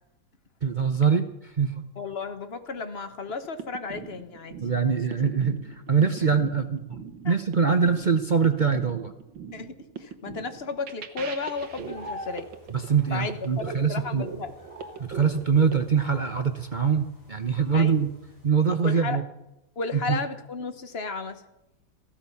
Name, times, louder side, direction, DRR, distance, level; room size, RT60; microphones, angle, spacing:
voice 1, 0.6-1.3 1.6-1.8 4.6-6.8 7.2-9.1 12.7-14.2 15.0-18.1 18.4-19.2 19.9-20.2, right 6 dB, 45° right, 7 dB, 0.6 m, -23 dB
voice 2, 2.0-5.0 7.2-7.3 9.5-12.5 13.1-14.5 17.7-18.0 18.8-19.2 19.8-21.4, left 4 dB, 40° left, 9 dB, 1.1 m, -34 dB
sound 1, 3.3-15.7, right 6 dB, 80° right, 2.0 m, -41 dB
sound 2, 11.6-18.5, left 1 dB, 15° left, 4.5 m, -46 dB
15.5 x 13.0 x 7.1 m, 0.91 s
omnidirectional pair, 2.1 m